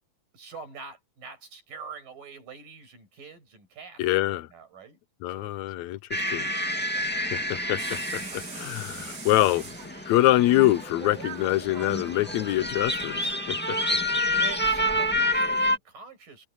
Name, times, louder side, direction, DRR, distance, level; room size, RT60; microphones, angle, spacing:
voice 1, 0.3-5.0 5.4-5.6 6.8-7.0 14.2-16.5, right 5 dB, 85° right, 8.1 m, -45 dB
voice 2, 4.0-4.5 5.2-6.5 7.3-8.2 8.6-9.7 10.1-14.0, left 16 dB, 75° left, 1.8 m, -25 dB
sound 1, 6.1-15.8, left 1 dB, 5° left, 1.1 m, -29 dB
sound 2, 7.8-13.4, right 6 dB, 50° right, 3.4 m, -43 dB
omnidirectional pair, 3.8 m